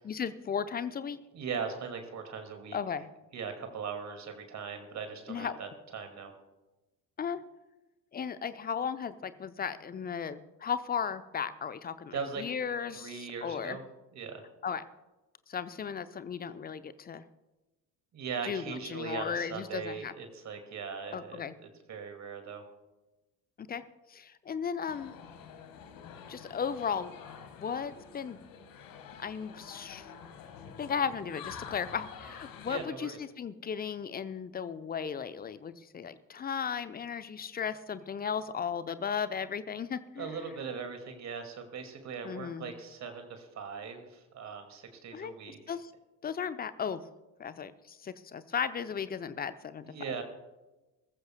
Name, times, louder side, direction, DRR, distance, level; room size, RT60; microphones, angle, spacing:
voice 1, 0.0-1.2 2.7-3.1 5.3-5.6 7.2-7.4 8.1-13.8 14.6-14.8 15.5-17.2 18.4-20.1 21.1-21.6 23.6-23.8 24.1-25.1 26.3-27.2 27.6-28.4 29.2-30.1 30.8-40.3 42.2-42.7 45.1-45.3 45.7-45.9 46.2-47.0 47.4-49.9, left 7 dB, 20° left, 14 dB, 0.7 m, -35 dB
voice 2, 1.3-2.8 3.3-6.3 12.1-12.4 12.9-13.8 14.1-14.5 18.1-22.6 32.7-33.2 40.2-45.6 49.8-50.2, right 6 dB, 35° right, 6 dB, 2.3 m, -39 dB
sound 1, 24.9-32.9, left 7 dB, 45° left, 1.7 m, -48 dB
21.0 x 14.5 x 2.3 m, 1.1 s
figure-of-eight pair, 60°, 48 cm